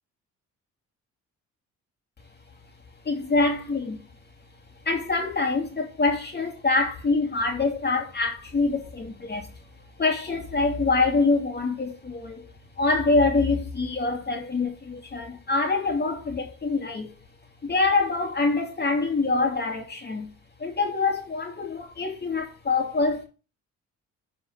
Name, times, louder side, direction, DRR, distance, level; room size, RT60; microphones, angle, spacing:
voice 1, 3.0-4.0 4.8-9.5 10.0-12.5 12.8-17.1 17.6-20.3 20.6-23.2, left 3 dB, 35° left, 2.4 m, -25 dB
11.5 x 4.5 x 5.6 m
cardioid pair, 90°, 30 cm